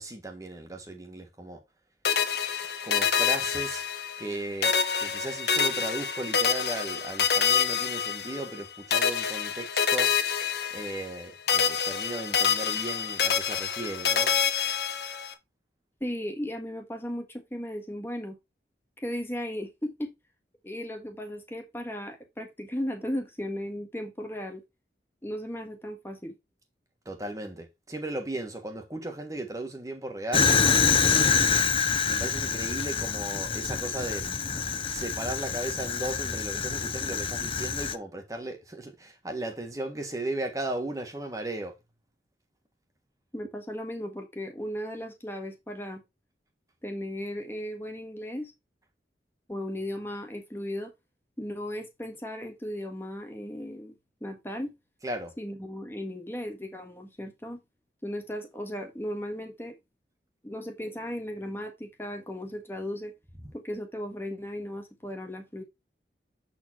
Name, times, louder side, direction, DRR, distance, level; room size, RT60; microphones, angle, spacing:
voice 1, 0.0-1.6 2.8-3.8 4.2-4.7 5.0-10.1 10.7-14.3 27.0-30.5 32.0-41.7 55.0-55.3 63.4-63.5, right 1 dB, 20° right, 1.5 m, -36 dB
sound 1, 2.0-4.3 4.6-8.6 8.9-11.2 11.5-15.3, left 7 dB, 70° left, 1.2 m, -27 dB
voice 2, 16.0-18.4 19.0-20.1 20.6-24.6 25.2-26.3 43.3-46.0 46.8-48.5 49.5-50.9 51.4-53.9 54.2-54.7 55.4-57.6 58.0-59.8 60.4-63.1 63.5-65.6, equal, 15° left, 1.5 m, -36 dB
Fire, 30.3-38.0, left 6 dB, 30° left, 0.5 m, -26 dB
7.9 x 4.4 x 4.4 m
head